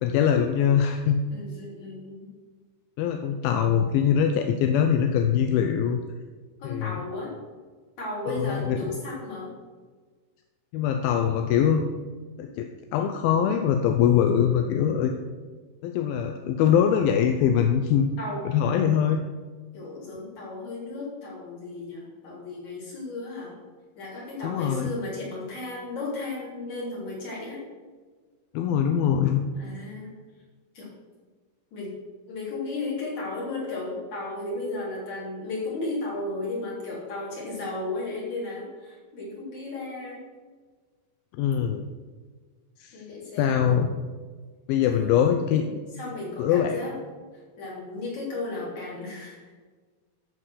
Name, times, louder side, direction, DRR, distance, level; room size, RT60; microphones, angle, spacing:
voice 1, 0.0-1.2 3.0-6.0 6.6-7.0 8.3-8.9 10.7-11.9 12.4-15.1 15.8-18.1 18.5-19.2 24.4-24.9 28.5-29.4 41.4-41.8 42.8-43.0 43.4-43.9 44.7-45.8 46.4-46.8, left 8 dB, 80° left, 5 dB, 2.2 m, -23 dB
voice 2, 1.3-2.3 6.6-7.3 8.0-9.5 18.2-18.9 19.7-23.6 24.0-27.6 29.5-30.1 30.7-30.9 31.7-31.9 32.3-40.2 42.9-43.7 44.9-45.1 45.9-47.0 47.6-49.4, left 2 dB, 45° left, -6 dB, 4.7 m, -34 dB
13.5 x 4.8 x 6.5 m, 1.4 s
omnidirectional pair, 4.6 m